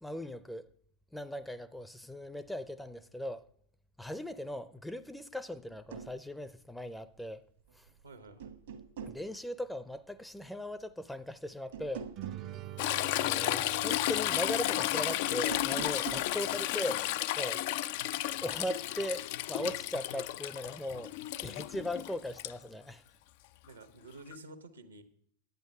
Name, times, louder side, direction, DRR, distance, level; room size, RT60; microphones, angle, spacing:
voice 1, 0.0-0.7 1.1-3.5 4.0-7.4 7.8-7.9 9.1-12.1 13.2-17.0 17.4-17.6 18.4-21.1 21.4-23.0, left 1 dB, 5° left, 0.5 m, -39 dB
sound 1, 5.7-6.1 7.7-8.0 8.4-9.2 11.7-12.5 15.4-16.3, right 7 dB, 65° right, 1.2 m, -43 dB
voice 2, 8.0-8.5 16.2-16.9 23.6-25.0, right 2 dB, 85° right, 1.3 m, -51 dB
sound 2, 12.2-15.8, right 13 dB, 40° right, 0.6 m, -46 dB
Toilet flush / Trickle dribble, 12.8-22.5 24.3-24.4, left 15 dB, 55° left, 0.3 m, -33 dB
10.5 x 9.1 x 5.4 m
figure-of-eight pair, 90°, 0 cm